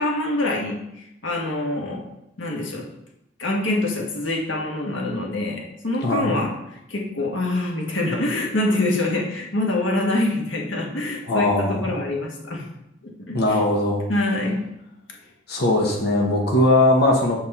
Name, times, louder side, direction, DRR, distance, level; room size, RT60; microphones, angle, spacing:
voice 1, 0.0-2.1 2.4-2.9 3.4-6.5 6.9-12.6 13.2-13.6 14.1-14.7, left 2 dB, 85° left, -1 dB, 1.4 m, -25 dB
voice 2, 6.0-6.3 11.3-12.0 13.3-14.0 15.5-17.4, left 1 dB, 55° left, -1 dB, 1.2 m, -20 dB
7.3 x 4.7 x 4.2 m, 0.82 s
head